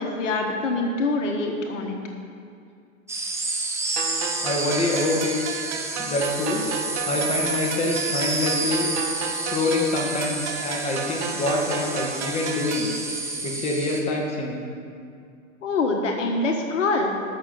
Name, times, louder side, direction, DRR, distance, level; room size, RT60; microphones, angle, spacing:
voice 1, 0.0-2.0 15.6-17.1, left 3 dB, 65° left, 2 dB, 1.6 m, -25 dB
sound 1, 3.1-14.0, right 2 dB, 5° right, 1.4 m, -30 dB
sound 2, 4.0-13.0, right 6 dB, 55° right, 1.4 m, -33 dB
voice 2, 4.4-5.7 6.0-6.7 7.1-8.9 9.3-12.9 13.4-14.6, left 2 dB, 15° left, -1 dB, 2.1 m, -26 dB
12.5 x 6.4 x 7.1 m, 2.3 s
hypercardioid pair, 105°, 40 cm